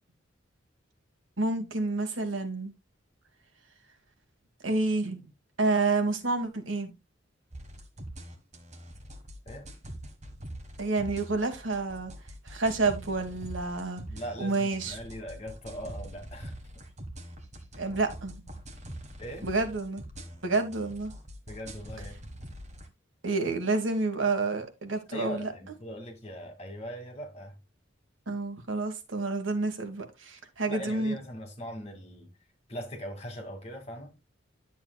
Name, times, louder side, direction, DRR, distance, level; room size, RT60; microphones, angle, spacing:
voice 1, 1.4-2.7 4.6-5.2 5.6-6.9 10.8-12.1 12.5-14.0 14.4-15.0 17.8-18.4 19.4-20.0 20.4-21.1 23.2-25.5 28.3-31.2, right 3 dB, 80° right, 1.7 m, -29 dB
sound 1, 7.5-22.9, right 1 dB, 35° right, 1.5 m, -44 dB
voice 2, 14.1-16.5 19.2-19.5 21.5-22.2 25.1-27.6 30.7-32.3 32.7-34.1, equal, 35° left, 2.4 m, -40 dB
11.0 x 7.2 x 2.3 m
head